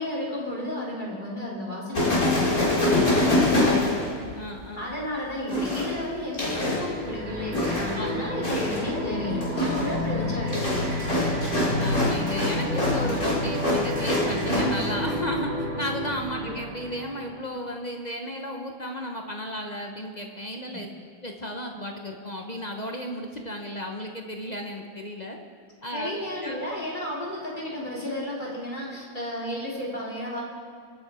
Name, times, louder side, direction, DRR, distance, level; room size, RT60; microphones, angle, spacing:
voice 1, 0.0-2.8 3.6-3.7 4.8-11.4 16.3-16.5 20.6-20.8 25.9-30.4, left 1 dB, 20° left, -4 dB, 3.2 m, -33 dB
sound 1, 1.9-4.6 5.5-6.9 7.5-8.1 8.4-8.9 9.3-14.9, left 2 dB, 40° left, 4.3 m, -25 dB
voice 2, 2.9-3.5 4.3-4.9 7.9-8.5 11.8-20.9 21.2-25.4 25.8-26.7, left 1 dB, 60° left, 2 dB, 0.4 m, -34 dB
sound 2, 6.9-17.4, equal, 40° right, 2.2 m, -30 dB
24.0 x 8.5 x 4.9 m, 2.2 s
omnidirectional pair, 2.4 m